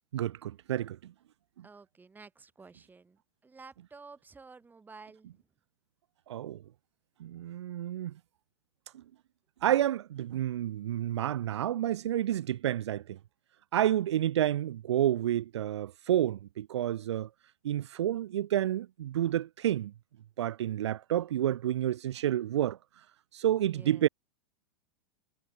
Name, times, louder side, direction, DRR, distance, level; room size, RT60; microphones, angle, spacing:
voice 1, 0.1-1.0 6.3-6.6 7.2-8.1 9.6-13.2 13.7-17.3 17.6-19.9 20.4-22.8 23.3-24.1, right 12 dB, 80° right, 0.5 m, -29 dB
voice 2, 1.6-5.3 23.6-24.1, right 4 dB, 15° right, 1.6 m, -52 dB
hypercardioid pair, 110°, 14 cm